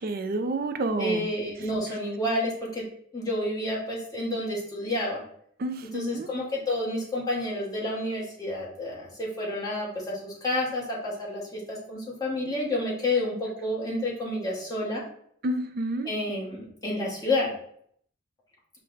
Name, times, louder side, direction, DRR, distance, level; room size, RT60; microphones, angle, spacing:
voice 1, 0.0-1.2 5.6-6.3 15.4-16.1, right 2 dB, 45° right, 8 dB, 0.4 m, -29 dB
voice 2, 1.0-2.8 3.1-5.2 5.8-15.0 16.0-17.5, left 1 dB, 20° left, -5 dB, 1.1 m, -30 dB
5.1 x 2.2 x 3.9 m, 0.65 s
head